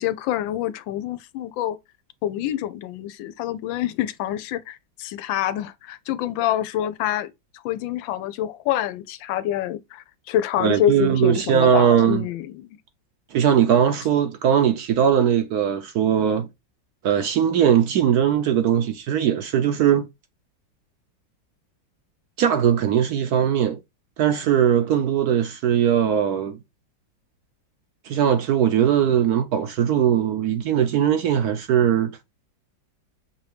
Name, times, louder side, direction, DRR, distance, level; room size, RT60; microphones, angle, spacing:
voice 1, 0.0-1.8 2.2-7.3 7.6-12.8, left 12 dB, 90° left, 1.3 m, -26 dB
voice 2, 10.6-12.2 13.3-16.5 17.0-20.1 22.4-23.8 24.2-26.6 28.1-32.2, right 9 dB, 70° right, 1.0 m, -20 dB
6.0 x 2.7 x 3.3 m
omnidirectional pair, 2.0 m